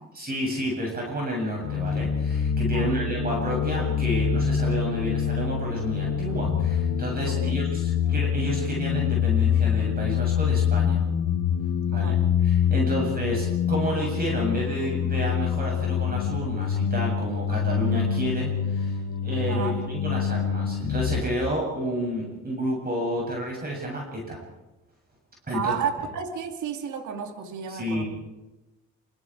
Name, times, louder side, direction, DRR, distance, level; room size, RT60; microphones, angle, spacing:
voice 1, 0.1-11.0 11.9-24.4 25.5-25.8 27.7-28.0, equal, 30° right, -2 dB, 8.0 m, -30 dB
sound 1, 1.6-21.2, left 8 dB, 85° left, 2.4 m, -25 dB
voice 2, 2.7-3.1 7.3-7.5 11.9-12.2 12.9-13.1 19.5-19.8 25.5-28.0, right 6 dB, 75° right, 4 dB, 3.2 m, -32 dB
27.5 x 25.0 x 4.9 m, 1.1 s
cardioid pair, 90°, 30 cm